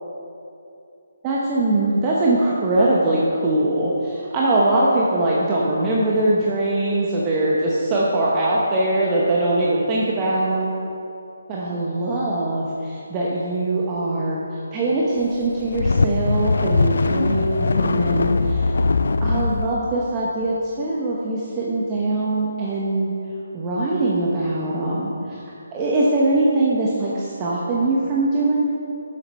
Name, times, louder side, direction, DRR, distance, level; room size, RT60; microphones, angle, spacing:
voice 1, 1.2-10.7 11.5-14.4 14.7-18.7 19.2-23.1 23.5-25.1 25.7-28.6, right 2 dB, 20° right, -5 dB, 1.0 m, -22 dB
sound 1, 15.4-19.7, left 3 dB, 65° left, 0.4 m, -20 dB
7.7 x 7.3 x 5.4 m, 2.7 s
figure-of-eight pair, 150°, 0 cm